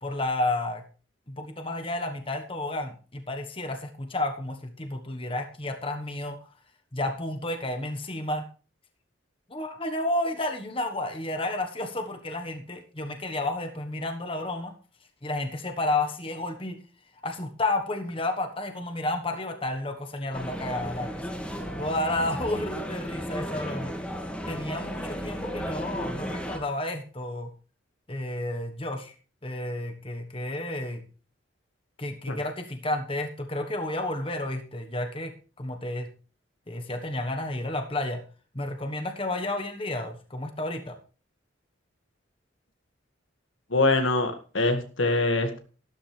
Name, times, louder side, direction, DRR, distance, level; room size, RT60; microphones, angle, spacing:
voice 1, 0.0-0.8 1.3-6.4 6.9-8.4 9.5-14.7 15.2-16.8 17.2-21.3 21.7-23.9 24.5-27.5 28.1-29.1 29.4-31.0 32.0-36.1 36.7-38.2 38.5-41.0, left 2 dB, 30° left, 5 dB, 1.3 m, -31 dB
sound 1, 20.3-26.6, equal, 5° left, 2.0 m, -34 dB
voice 2, 43.7-45.6, left 2 dB, 85° left, 6 dB, 2.1 m, -24 dB
13.0 x 12.5 x 3.4 m, 0.36 s
head